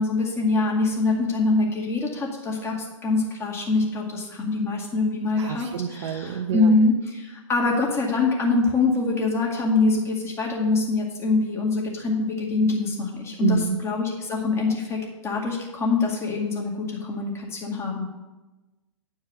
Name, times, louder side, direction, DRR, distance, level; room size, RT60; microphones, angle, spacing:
voice 1, 0.0-2.8 3.0-18.0, left 3 dB, 15° left, -2 dB, 2.1 m, -24 dB
voice 2, 5.4-6.7 13.4-13.8, right 8 dB, 65° right, 5 dB, 0.7 m, -27 dB
9.7 x 4.7 x 7.4 m, 1.1 s
hypercardioid pair, 120°, 16 cm